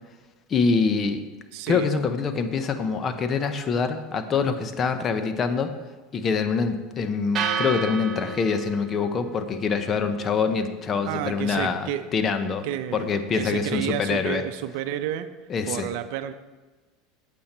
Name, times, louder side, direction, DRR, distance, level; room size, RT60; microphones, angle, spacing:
voice 1, 0.5-1.2 1.7-5.8 6.1-12.7 12.9-14.4 15.5-15.9, left 5 dB, 35° left, 9 dB, 0.9 m, -25 dB
voice 2, 1.5-1.9 11.1-12.1 12.6-15.3 15.7-16.3, right 11 dB, 70° right, 11 dB, 0.6 m, -31 dB
sound 1, 7.3-15.5, right 6 dB, 35° right, 1.3 m, -36 dB
8.7 x 8.2 x 4.4 m, 1.2 s
supercardioid pair, 105°, 0 cm